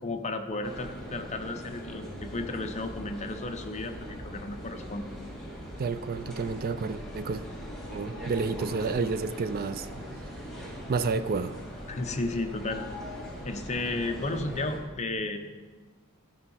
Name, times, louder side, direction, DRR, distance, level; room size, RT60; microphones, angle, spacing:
voice 1, 0.0-5.1 11.9-12.8 13.4-15.4, left 2 dB, 30° left, 6 dB, 0.8 m, -33 dB
sound 1, 0.6-14.8, equal, ahead, 2.3 m, -41 dB
voice 2, 5.8-7.4 7.9-9.9 10.9-11.6, right 4 dB, 45° right, 13 dB, 0.4 m, -30 dB
14.5 x 5.3 x 5.6 m, 1.4 s
head